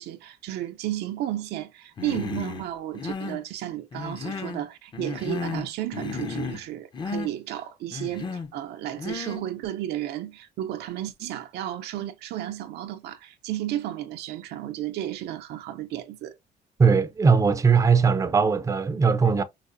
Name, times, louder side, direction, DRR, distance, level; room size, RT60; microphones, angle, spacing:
voice 1, 0.0-16.4, right 12 dB, 75° right, 0.6 m, -33 dB
Human voice, 2.0-2.6 2.9-3.4 3.9-4.6 4.9-5.7 5.9-6.6 6.9-7.3 7.9-8.5 9.0-9.4, left 5 dB, 25° left, 0.6 m, -33 dB
voice 2, 16.8-19.4, right 5 dB, 20° right, 0.5 m, -20 dB
4.6 x 2.0 x 2.5 m
cardioid pair, 110°, 17 cm